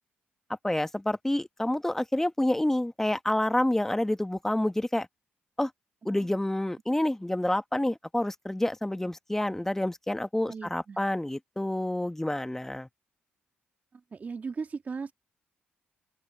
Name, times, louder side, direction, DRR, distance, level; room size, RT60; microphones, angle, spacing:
voice 1, 0.6-5.1 5.6-5.7 6.0-12.9, left 1 dB, 10° left, 1.3 m, -28 dB
voice 2, 10.5-11.0 13.9-15.1, right 5 dB, 45° right, 2.0 m, -37 dB
open air
supercardioid pair, 60°, 4 cm